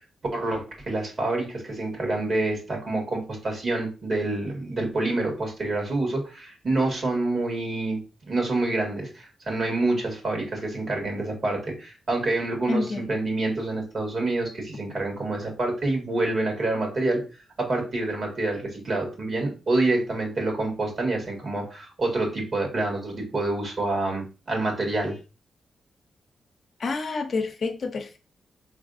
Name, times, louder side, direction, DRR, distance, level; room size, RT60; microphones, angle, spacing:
voice 1, 0.3-8.0 8.3-17.2 17.6-25.2, right 2 dB, 50° right, 1.9 m, -27 dB
voice 2, 12.7-13.1 26.8-28.2, left 3 dB, 55° left, 0.7 m, -28 dB
5.1 x 3.3 x 2.5 m
wide cardioid pair, 110°, 0 cm